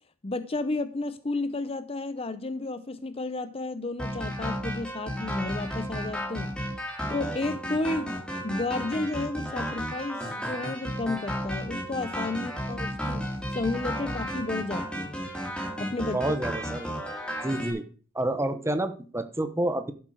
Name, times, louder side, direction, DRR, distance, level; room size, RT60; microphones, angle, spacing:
voice 1, 0.2-6.5 7.1-15.2 15.8-16.2, left 2 dB, 25° left, 0.6 m, -32 dB
sound 1, 4.0-17.7, equal, 5° left, 3.0 m, -33 dB
voice 2, 16.1-16.9 17.4-17.8 18.1-19.9, right 1 dB, 15° right, 1.0 m, -29 dB
11.5 x 7.8 x 4.9 m
head